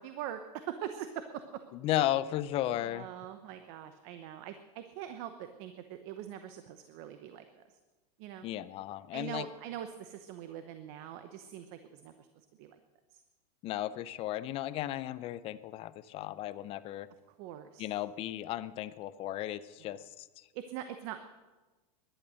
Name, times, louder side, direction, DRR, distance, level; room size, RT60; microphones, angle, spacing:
voice 1, 0.0-1.6 2.6-7.8 8.2-8.5 9.1-12.3 12.6-12.8 13.1-13.2 17.4-17.9 19.8-19.9 20.5-21.2, right 10 dB, 45° right, 9 dB, 0.9 m, -43 dB
voice 2, 1.7-3.1 8.4-9.5 13.6-17.1 17.8-20.4, left 13 dB, 30° left, 15 dB, 0.5 m, -35 dB
17.5 x 11.0 x 6.4 m, 1.2 s
supercardioid pair, 150°, 20 cm